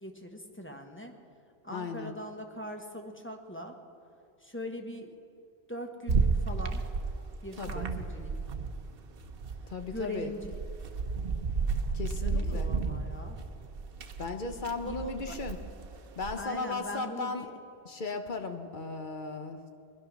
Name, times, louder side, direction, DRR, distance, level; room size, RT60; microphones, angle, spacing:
voice 1, 0.0-1.1 1.6-3.8 4.4-5.2 5.7-6.8 7.4-8.3 9.9-10.5 12.1-13.4 14.8-15.4 16.4-17.5, left 1 dB, 10° left, 3 dB, 1.1 m, -41 dB
voice 2, 1.7-2.1 7.6-7.9 9.7-10.3 11.9-12.7 14.2-15.6 16.2-17.5 17.8-19.8, left 3 dB, 50° left, 6 dB, 1.1 m, -36 dB
sound 1, 6.1-8.9 9.2-16.4, right 4 dB, 65° right, 1.0 m, -32 dB
20.0 x 11.0 x 6.2 m, 2.5 s
omnidirectional pair, 1.1 m